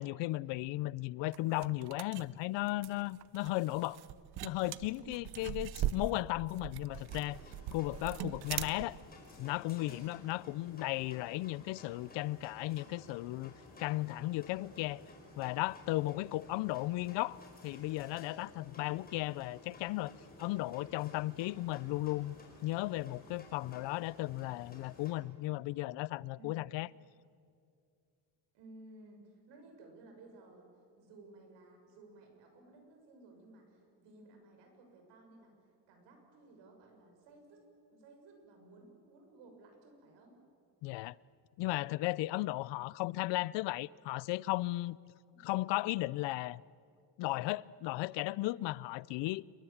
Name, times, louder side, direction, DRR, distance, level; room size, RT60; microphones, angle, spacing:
voice 1, 0.0-4.0 4.4-7.4 7.7-9.0 9.4-13.5 13.8-15.0 15.4-17.4 17.6-20.1 20.4-22.4 22.6-26.9 40.8-41.2 41.6-45.0 45.4-46.6 47.2-49.4, left 18 dB, 85° left, 0.6 m, -35 dB
sound 1, 1.3-9.0, right 12 dB, 65° right, 0.8 m, -41 dB
sound 2, 6.9-25.1, left 2 dB, 20° left, 4.9 m, -55 dB
voice 2, 28.5-30.7 31.0-35.5 35.9-37.6 37.9-40.4 45.3-45.5, right 2 dB, 90° right, 6.7 m, -57 dB
28.5 x 22.5 x 7.3 m
cardioid pair, 165°, 42 cm